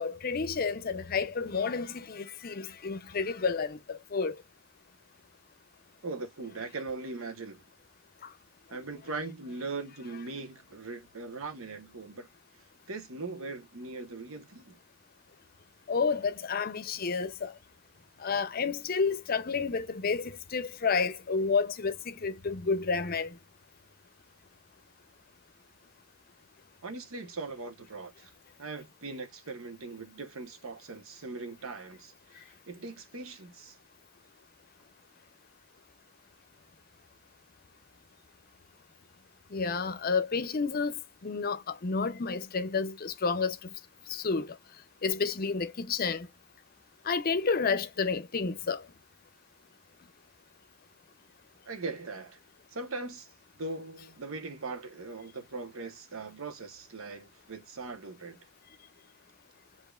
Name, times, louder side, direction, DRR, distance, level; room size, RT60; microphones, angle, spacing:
voice 1, 0.0-4.4 8.2-8.3 15.9-17.5 18.2-23.4 39.5-40.9 41.2-43.6 44.1-44.6 45.0-46.3 47.0-48.8, left 5 dB, 45° left, 0.6 m, -30 dB
voice 2, 6.0-7.6 8.7-12.3 12.9-14.8 26.8-28.3 28.6-33.8 51.7-52.4 52.7-53.3 53.6-58.4, right 3 dB, 90° right, 1.1 m, -40 dB
6.9 x 2.9 x 2.3 m
head